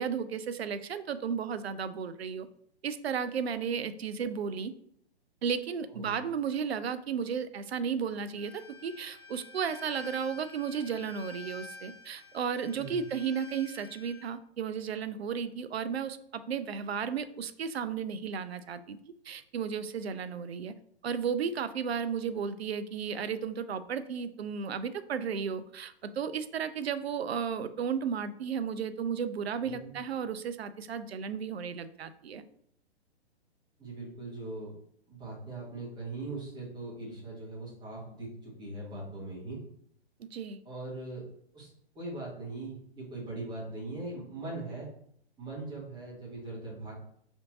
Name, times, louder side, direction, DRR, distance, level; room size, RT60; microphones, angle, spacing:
voice 1, 0.0-2.5 2.8-4.7 5.4-20.7 21.0-32.5 40.2-40.6, right 7 dB, 70° right, 13 dB, 0.5 m, -34 dB
Bowed string instrument, 8.3-14.3, left 4 dB, 5° left, 0.3 m, -49 dB
voice 2, 29.6-29.9 33.8-34.7 35.1-39.6 40.6-41.2 41.5-41.7 41.9-44.9 45.4-46.9, right 2 dB, 15° right, -6 dB, 1.6 m, -40 dB
5.0 x 3.4 x 2.7 m, 0.68 s
figure-of-eight pair, 115°, 33 cm